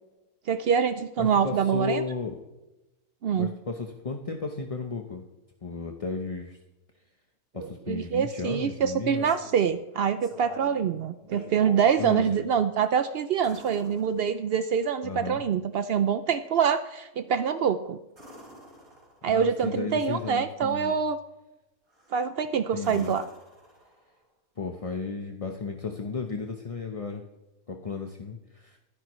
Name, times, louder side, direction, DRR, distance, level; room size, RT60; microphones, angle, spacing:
voice 1, 0.5-2.0 3.2-3.5 7.6-18.0 19.2-21.2 22.1-23.3, right 7 dB, 85° right, 11 dB, 0.5 m, -25 dB
voice 2, 1.2-2.4 3.3-5.2 5.6-6.6 7.5-9.3 12.0-12.4 15.0-15.4 19.3-21.0 22.7-23.1 24.6-27.2 27.7-28.8, left 4 dB, 30° left, 3 dB, 0.7 m, -34 dB
sound 1, 9.1-9.7 10.2-10.8 11.2-12.0 13.4-14.7 18.1-19.4 21.9-22.3 22.8-24.2 26.3-26.4, equal, 35° right, 4.4 m, -47 dB
21.5 x 10.5 x 3.1 m, 1.0 s
omnidirectional pair, 1.6 m